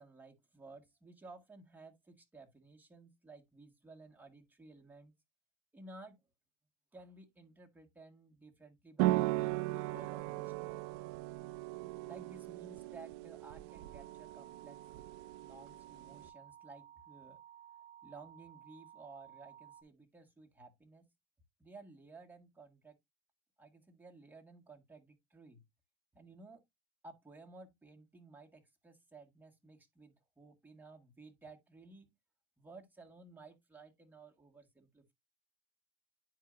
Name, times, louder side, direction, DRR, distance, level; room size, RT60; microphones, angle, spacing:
voice 1, 0.0-5.1 5.7-6.2 6.9-10.8 12.1-14.8 15.4-17.4 18.0-21.1 21.6-23.0 23.6-25.6 26.1-26.6 27.0-32.1 32.6-35.1, right 3 dB, 10° right, 1.8 m, -56 dB
sound 1, 9.0-16.3, right 18 dB, 75° right, 0.4 m, -37 dB
sound 2, 13.7-19.8, right 10 dB, 55° right, 1.9 m, -56 dB
10.0 x 4.6 x 2.5 m
supercardioid pair, 115°, 14 cm